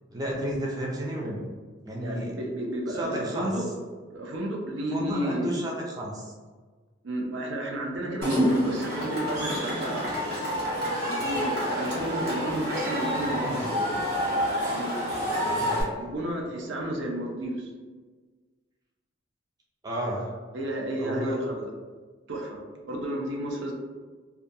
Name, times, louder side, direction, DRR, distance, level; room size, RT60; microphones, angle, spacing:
voice 1, 0.1-1.4 1.8-2.3 2.9-3.7 4.9-6.3 13.3-13.6 15.6-15.9 19.8-20.3 21.0-21.4, equal, 20° right, -3 dB, 0.3 m, -32 dB
voice 2, 2.0-3.6 4.1-5.6 7.0-10.6 11.0-13.9 14.6-15.2 15.7-17.7 20.5-21.7 22.3-23.7, right 1 dB, 75° right, 0 dB, 0.5 m, -32 dB
Cheering / Crowd, 8.2-15.8, equal, 55° right, 1.0 m, -28 dB
2.3 x 2.2 x 2.6 m, 1.4 s
head